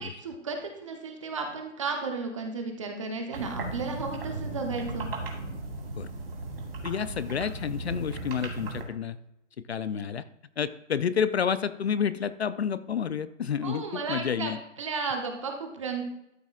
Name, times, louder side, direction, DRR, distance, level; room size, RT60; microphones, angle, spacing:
voice 1, 0.0-5.1 13.6-14.5 14.8-16.0, right 4 dB, 25° right, 4 dB, 0.9 m, -34 dB
sound 1, 3.3-8.8, right 2 dB, 50° right, 2.2 m, -36 dB
voice 2, 6.8-9.2 9.7-10.2 10.6-14.6, left 7 dB, 60° left, 15 dB, 0.5 m, -29 dB
13.0 x 5.9 x 2.4 m, 0.82 s
hypercardioid pair, 170°, 37 cm